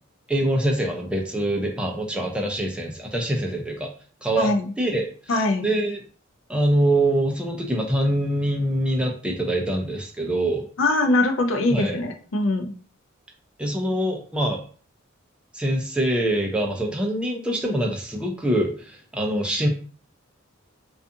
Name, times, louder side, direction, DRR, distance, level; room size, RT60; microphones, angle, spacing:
voice 1, 0.3-3.9 4.2-4.5 4.8-5.1 5.3-6.0 6.5-10.6 11.7-12.0 13.6-14.6 15.5-19.7, right 1 dB, 5° right, 1 dB, 0.4 m, -24 dB
voice 2, 5.3-5.7 10.8-12.7, left 2 dB, 65° left, 4 dB, 0.5 m, -22 dB
2.5 x 2.4 x 2.6 m, 0.41 s
head